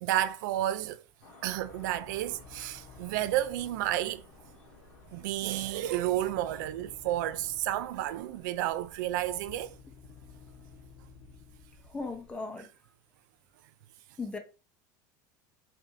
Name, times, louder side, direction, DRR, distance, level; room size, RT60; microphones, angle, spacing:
voice 1, 0.0-1.0 1.4-4.2 5.1-9.8, right 13 dB, 80° right, 0.4 m, -31 dB
sound 1, 1.2-9.8, left 3 dB, 90° left, 2.2 m, -58 dB
sound 2, 1.4-12.3, left 4 dB, 55° left, 1.1 m, -54 dB
voice 2, 11.8-12.7 14.2-14.4, left 3 dB, 10° left, 0.6 m, -38 dB
5.6 x 2.6 x 2.7 m
cardioid pair, 170°, 10 cm